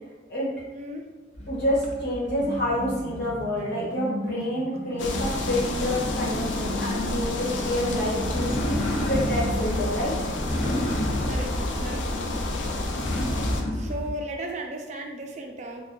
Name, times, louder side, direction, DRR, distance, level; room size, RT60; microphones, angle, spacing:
voice 1, 0.7-1.1 11.3-12.5 13.7-15.8, right 1 dB, 40° right, 2 dB, 0.4 m, -36 dB
sound 1, 1.3-3.4 8.2-14.1, equal, 35° left, 0.6 m, -31 dB
voice 2, 1.5-8.5 9.1-10.1, left 1 dB, 60° left, -7 dB, 1.3 m, -28 dB
sound 2, 2.4-10.4, equal, 5° right, 0.8 m, -36 dB
sound 3, 5.0-13.6, left 2 dB, 85° left, 0.4 m, -30 dB
2.7 x 2.3 x 3.6 m, 1.2 s
head